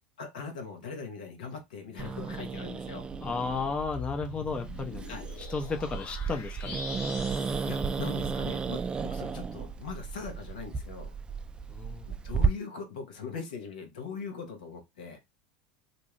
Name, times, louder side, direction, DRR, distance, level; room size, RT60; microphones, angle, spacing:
voice 1, 0.2-3.1 5.1-5.2 7.5-11.1 12.1-15.2, left 5 dB, 85° left, 1.0 m, -41 dB
Growling, 2.0-12.5, right 5 dB, 20° right, 0.3 m, -34 dB
sound 1, 2.9-8.7, left 6 dB, 55° left, 0.8 m, -44 dB
voice 2, 3.2-6.8 11.7-12.1, left 4 dB, 25° left, 0.6 m, -34 dB
2.7 x 2.2 x 3.1 m
hypercardioid pair, 90°, 4 cm